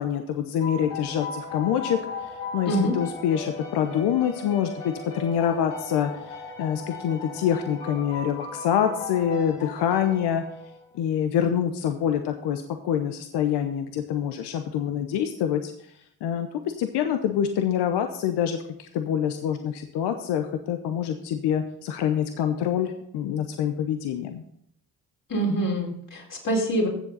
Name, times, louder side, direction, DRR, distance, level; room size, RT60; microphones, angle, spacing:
voice 1, 0.0-2.0 2.5-10.4 10.9-15.7 16.2-16.5 16.8-24.4, left 9 dB, 70° left, 7 dB, 1.0 m, -26 dB
sound 1, 0.6-11.0, left 4 dB, 85° left, 4.1 m, -37 dB
voice 2, 25.3-26.9, right 1 dB, 50° left, -2 dB, 4.4 m, -25 dB
15.0 x 7.2 x 4.0 m, 0.71 s
hypercardioid pair, 50°, 41 cm